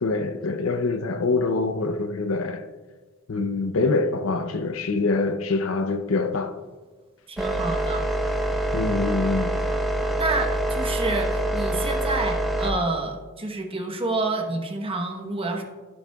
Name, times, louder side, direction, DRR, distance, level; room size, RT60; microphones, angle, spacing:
voice 1, 0.0-2.7 3.3-6.6 8.7-9.6, left 3 dB, 75° left, 0.6 m, -25 dB
voice 2, 7.3-8.1 10.2-15.6, right 2 dB, 25° right, 1.0 m, -28 dB
sound 1, 7.4-12.7, right 1 dB, ahead, 0.9 m, -25 dB
12.5 x 8.9 x 2.3 m
head